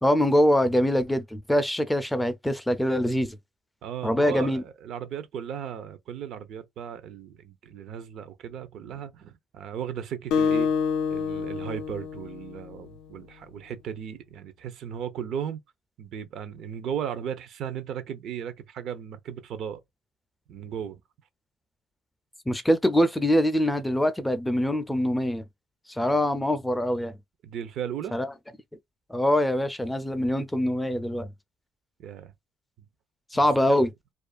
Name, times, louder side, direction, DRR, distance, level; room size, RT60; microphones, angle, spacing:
voice 1, 0.0-3.4 4.0-4.6 22.5-25.4 25.9-27.2 28.1-28.3 29.1-31.3 33.3-33.9, left 1 dB, 5° left, 0.4 m, -24 dB
voice 2, 3.8-10.7 11.1-15.6 16.0-19.8 20.5-21.0 27.4-28.1 32.0-32.3 33.3-33.8, right 8 dB, 65° right, 0.5 m, -36 dB
Acoustic guitar, 10.3-13.1, left 6 dB, 80° left, 0.4 m, -27 dB
2.4 x 2.3 x 2.2 m
cardioid pair, 95°, 0 cm